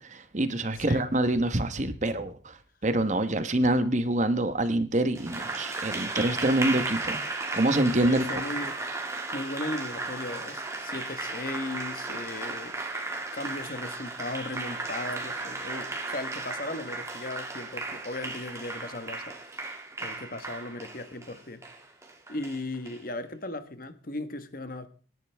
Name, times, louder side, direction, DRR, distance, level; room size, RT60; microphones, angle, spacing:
voice 1, 0.0-2.6 2.8-7.2 7.5-8.2, right 1 dB, 40° right, 1.2 m, -26 dB
Applause, 5.1-23.0, right 3 dB, 15° right, 2.3 m, -35 dB
voice 2, 8.0-8.8 9.3-12.9 13.3-21.6 22.3-24.9, left 2 dB, 50° left, 1.3 m, -37 dB
26.5 x 11.0 x 3.5 m
head